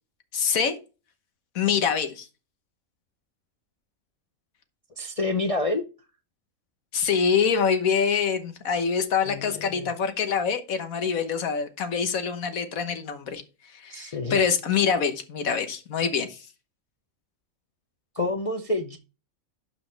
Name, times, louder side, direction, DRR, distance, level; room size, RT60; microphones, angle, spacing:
voice 1, 0.3-0.8 1.5-2.3 6.9-13.4 13.7-16.5, left 6 dB, 80° left, 8 dB, 1.6 m, -25 dB
voice 2, 5.0-5.8 9.3-9.9 13.9-14.5 18.2-19.0, left 2 dB, 35° left, 4 dB, 0.6 m, -28 dB
12.0 x 5.1 x 3.3 m, 0.31 s
omnidirectional pair, 1.4 m